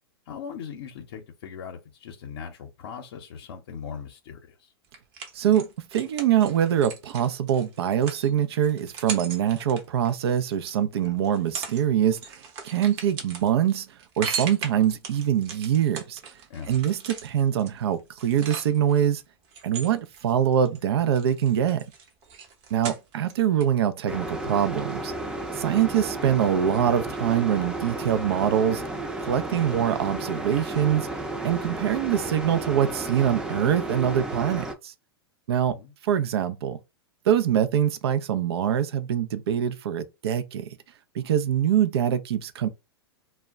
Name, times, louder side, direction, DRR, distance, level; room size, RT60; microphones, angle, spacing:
voice 1, 0.3-4.7 11.0-11.1 16.5-16.8 35.6-35.9, left 7 dB, 70° left, 0.6 m, -40 dB
sound 1, 4.9-10.8 11.2-11.8 12.1-19.0 19.5-20.8 21.1-23.3 23.6-23.7, right 6 dB, 45° right, 0.8 m, -38 dB
voice 2, 5.3-13.9 14.2-16.2 16.7-19.2 19.6-21.8 22.7-25.1 25.5-28.8 29.2-31.1 31.4-34.9 35.5-35.8 36.0-36.8 37.3-40.8 41.1-42.7, right 9 dB, 75° right, 0.4 m, -24 dB
sound 2, 24.1-34.7, right 2 dB, 5° right, 0.5 m, -33 dB
2.2 x 2.1 x 3.6 m
hypercardioid pair, 115°, 14 cm